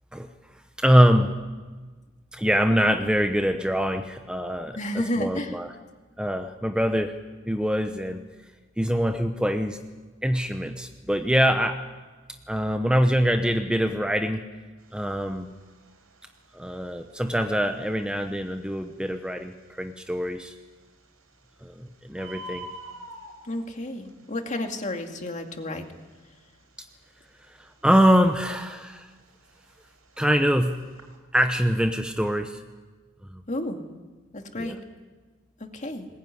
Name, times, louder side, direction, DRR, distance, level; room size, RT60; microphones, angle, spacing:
voice 1, 0.8-1.3 2.3-5.7 6.2-7.1 7.5-8.2 8.8-9.8 10.2-11.8 12.5-14.4 14.9-15.5 16.5-20.5 21.6-22.7 27.6-29.1 30.2-30.8 31.3-32.6 33.3-33.4 34.6-34.8, equal, 5° right, 6 dB, 0.9 m, -24 dB
voice 2, 4.8-5.6 23.4-25.9 33.5-33.9 34.3-34.8 35.6-36.1, left 1 dB, 35° left, 4 dB, 2.2 m, -31 dB
Bird, 14.8-31.2, right 1 dB, 85° right, 5.5 m, -49 dB
21.0 x 20.5 x 9.7 m, 1.3 s
head